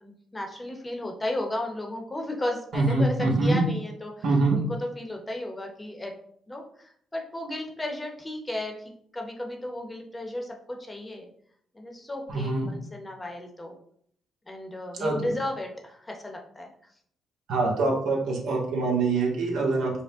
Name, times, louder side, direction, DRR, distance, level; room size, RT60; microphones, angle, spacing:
voice 1, 0.0-3.1 3.4-4.2 4.5-6.1 6.5-8.7 9.1-11.3 11.7-13.7 14.5-16.7, left 1 dB, 20° left, 2 dB, 0.8 m, -34 dB
voice 2, 2.7-3.6 4.2-4.6 12.3-12.7 15.0-15.3 17.5-19.9, right 3 dB, 75° right, -1 dB, 1.2 m, -24 dB
4.9 x 2.2 x 3.5 m, 0.64 s
cardioid pair, 90°, 0 cm